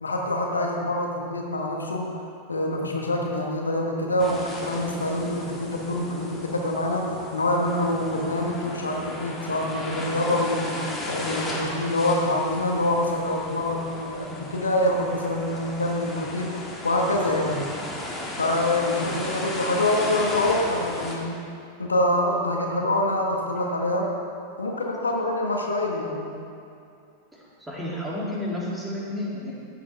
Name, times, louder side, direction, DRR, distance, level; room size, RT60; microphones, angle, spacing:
voice 1, 0.0-2.2 2.5-10.8 11.1-17.6 18.4-21.4 21.8-24.1 24.6-26.3, left 1 dB, 75° left, 0 dB, 1.3 m, -25 dB
sound 1, 4.2-21.2, left 1 dB, 10° left, 1.8 m, -35 dB
voice 2, 27.3-29.5, left 1 dB, 5° right, -6 dB, 2.6 m, -31 dB
15.0 x 8.3 x 3.5 m, 2.5 s
figure-of-eight pair, 90°, 0 cm